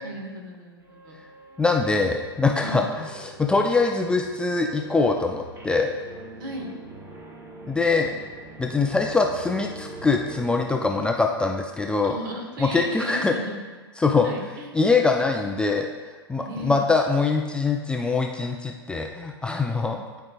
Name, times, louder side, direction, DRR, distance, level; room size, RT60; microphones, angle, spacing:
voice 1, 0.0-1.2 2.6-2.8 6.4-6.7 12.0-13.7 14.2-14.8 16.4-16.8 19.8-20.0, right 1 dB, 55° right, 2 dB, 1.4 m, -36 dB
sound 1, 0.8-10.9, right 2 dB, 20° right, 0.9 m, -44 dB
voice 2, 1.6-5.9 7.7-8.1 8.6-12.2 12.6-13.3 14.0-14.3 14.7-15.9 16.3-20.0, left 4 dB, 5° left, 2 dB, 0.4 m, -23 dB
12.0 x 4.7 x 2.3 m, 1.3 s
figure-of-eight pair, 100°, 13 cm